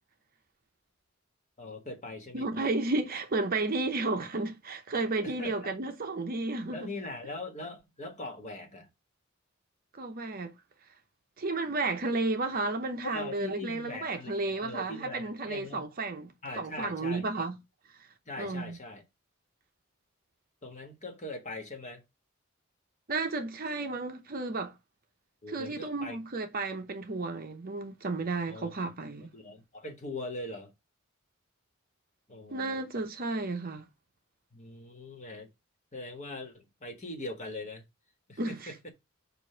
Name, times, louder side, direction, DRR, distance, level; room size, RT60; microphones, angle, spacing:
voice 1, 1.6-2.7 5.2-5.7 6.7-8.9 13.1-15.9 16.4-17.5 18.2-19.0 20.6-22.0 25.4-26.2 28.5-28.7 29.3-30.7 32.3-32.8 34.5-35.5 35.9-37.9 38.3-38.9, left 2 dB, 35° left, 1.4 m, -41 dB
voice 2, 2.3-6.9 9.9-10.5 11.4-17.6 18.4-18.8 23.1-24.7 25.5-29.3 32.5-33.9 38.4-38.7, right 3 dB, 45° right, 0.7 m, -32 dB
6.8 x 2.5 x 5.5 m
head